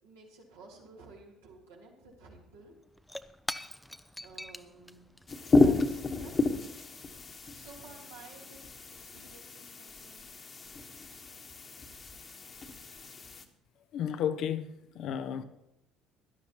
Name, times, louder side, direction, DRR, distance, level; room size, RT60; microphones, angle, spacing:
voice 1, 0.0-2.7 4.2-6.6 7.5-10.3, right 3 dB, 80° right, -4 dB, 3.1 m, -54 dB
Shatter / Crushing, 2.4-7.3, left 1 dB, 5° left, 0.6 m, -45 dB
sound 1, 5.3-13.4, left 3 dB, 35° left, 1.4 m, -31 dB
voice 2, 13.9-15.4, left 9 dB, 60° left, 10 dB, 0.8 m, -33 dB
17.0 x 11.5 x 3.0 m, 0.85 s
hypercardioid pair, 55°, 0 cm